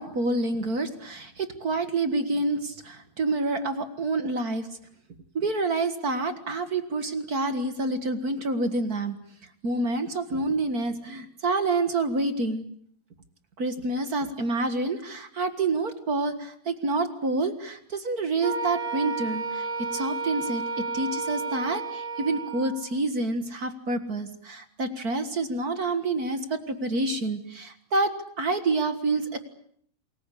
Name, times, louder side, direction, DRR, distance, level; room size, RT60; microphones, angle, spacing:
voice 1, 0.0-4.7 5.3-9.2 9.6-12.6 13.6-20.6 20.9-29.4, right 2 dB, 40° right, 9 dB, 1.4 m, -28 dB
Wind instrument woodwind instrument, 18.4-22.8, right 4 dB, ahead, 4.9 m, -32 dB
28.0 x 21.5 x 8.4 m, 0.64 s
omnidirectional pair, 3.9 m